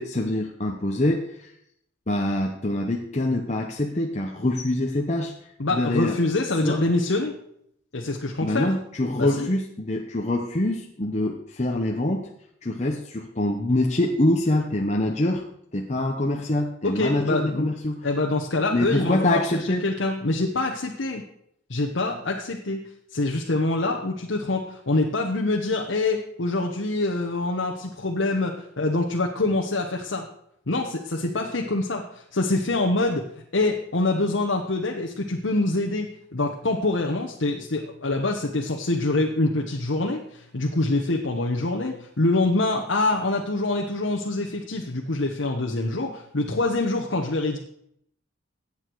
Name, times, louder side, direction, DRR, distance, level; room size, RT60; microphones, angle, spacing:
voice 1, 0.0-1.5 2.1-5.3 5.7-6.2 6.6-6.8 8.4-12.3 12.6-15.4 15.7-18.0 18.7-19.8, left 1 dB, 35° left, 1 dB, 0.9 m, -25 dB
voice 2, 5.6-7.4 7.9-8.7 9.2-9.5 16.8-17.7 18.0-21.2 21.7-22.8 23.1-30.3 30.7-33.2 33.5-47.6, left 2 dB, 75° left, 0 dB, 1.2 m, -25 dB
15.0 x 8.8 x 4.7 m, 0.72 s
head